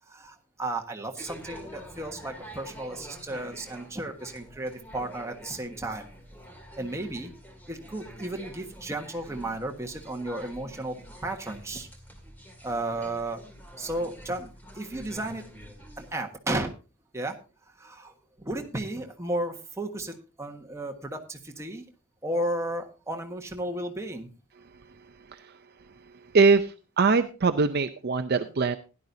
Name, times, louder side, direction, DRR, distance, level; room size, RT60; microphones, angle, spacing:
voice 1, 0.1-6.1 6.7-7.3 7.7-10.9 11.2-11.9 12.6-13.4 13.8-15.4 16.0-16.7 17.1-17.4 17.8-21.8 22.2-24.3, right 1 dB, 15° right, 2 dB, 1.4 m, -34 dB
sound 1, 1.2-16.1, equal, 10° left, 2.3 m, -47 dB
voice 2, 26.3-28.8, right 4 dB, 50° right, 9 dB, 0.6 m, -22 dB
16.0 x 11.0 x 2.7 m, 0.32 s
head